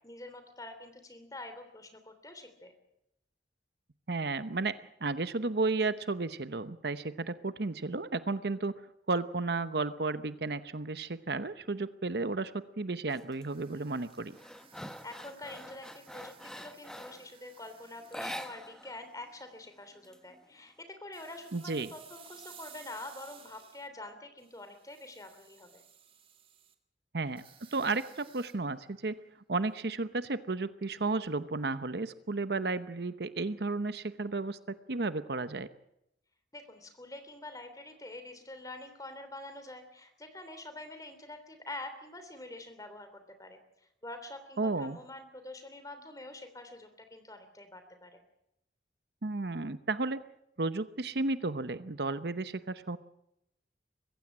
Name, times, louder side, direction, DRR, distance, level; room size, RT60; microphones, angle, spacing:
voice 1, 0.0-2.7 15.0-25.8 36.5-48.2, left 2 dB, 20° left, 8 dB, 3.2 m, -46 dB
voice 2, 4.1-8.8 9.1-14.4 21.5-21.9 27.1-27.4 27.7-29.2 29.5-35.7 44.6-45.0 49.2-50.2 50.6-53.0, right 3 dB, 60° right, 13 dB, 0.9 m, -33 dB
sound 1, 13.1-13.5 13.9-17.3 18.0-19.0 19.3-19.4 19.8-20.7, equal, 5° left, 1.1 m, -44 dB
sound 2, 13.5-19.6 20.0-20.2 21.1-23.9 24.4-26.7 27.3-29.2 29.6-29.8, right 8 dB, 30° right, 1.8 m, -57 dB
22.5 x 15.5 x 8.9 m, 0.82 s
head